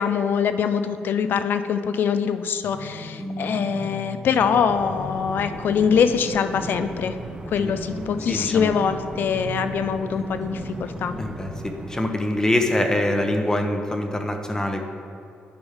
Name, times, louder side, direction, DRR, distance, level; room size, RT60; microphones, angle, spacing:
voice 1, 0.0-7.2 7.5-11.1, left 7 dB, 65° left, 10 dB, 0.4 m, -23 dB
sound 1, 2.6-11.5, equal, ahead, 1.2 m, -37 dB
sound 2, 4.7-12.0, right 1 dB, 25° right, 0.9 m, -38 dB
voice 2, 8.3-8.7 11.2-14.8, left 1 dB, 15° left, 4 dB, 0.8 m, -24 dB
10.5 x 5.3 x 3.6 m, 2.6 s
cardioid pair, 80°, 4 cm